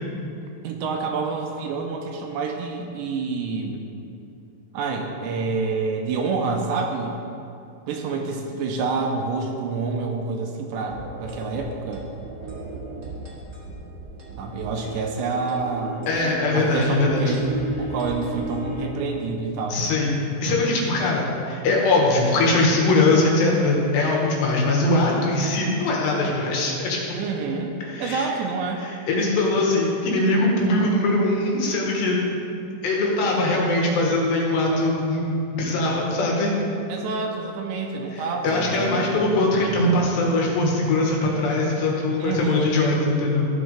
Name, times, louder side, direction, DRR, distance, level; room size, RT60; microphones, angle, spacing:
voice 1, 0.6-3.9 4.7-7.2 7.9-12.0 14.4-16.1 16.5-17.5 17.8-19.8 27.1-28.9 36.9-39.2 42.2-42.8, right 4 dB, 85° right, 2 dB, 2.8 m, -28 dB
sound 1, 10.8-18.8, right 2 dB, 35° right, 1.7 m, -35 dB
voice 2, 16.1-17.3 19.7-27.0 27.8-28.3 28.8-32.2 32.8-35.2 35.5-36.5 38.1-43.5, left 2 dB, 70° left, -2 dB, 3.2 m, -21 dB
14.5 x 8.0 x 3.4 m, 2.7 s
omnidirectional pair, 5.4 m